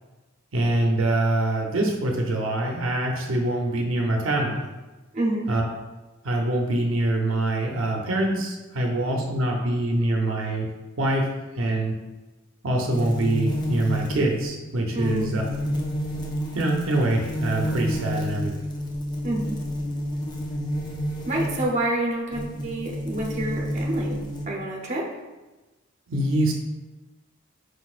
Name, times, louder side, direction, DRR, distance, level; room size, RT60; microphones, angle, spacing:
voice 1, 0.5-4.6 5.5-5.6 6.2-10.7 11.0-11.3 11.6-11.9 12.6-15.4 16.5-18.5 26.1-26.5, right 1 dB, 75° right, 0 dB, 0.7 m, -24 dB
voice 2, 5.1-5.5 14.9-15.3 19.2-19.5 21.3-25.1, right 1 dB, 35° right, -2 dB, 0.8 m, -28 dB
sound 1, 12.9-21.8 22.3-24.5, equal, 20° left, 0.6 m, -30 dB
4.7 x 4.1 x 2.4 m, 1.2 s
head